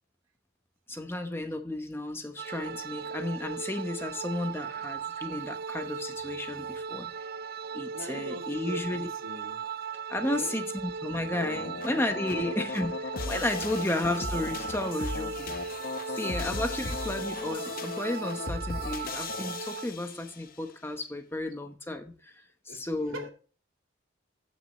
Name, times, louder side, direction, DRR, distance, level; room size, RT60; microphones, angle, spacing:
voice 1, 0.9-7.1 7.7-9.1 10.1-12.9 13.2-15.6 16.1-23.2, left 1 dB, 10° left, 0.9 m, -33 dB
sound 1, 2.4-19.9, right 6 dB, 45° right, 0.3 m, -38 dB
voice 2, 7.9-9.7 10.2-10.6 11.6-12.0 12.3-12.6 13.7-13.8 15.9-16.0 22.7-23.3, right 1 dB, 80° right, 2.3 m, -42 dB
sound 2, 11.3-20.5, left 3 dB, 45° left, 0.7 m, -37 dB
15.0 x 6.3 x 3.0 m
head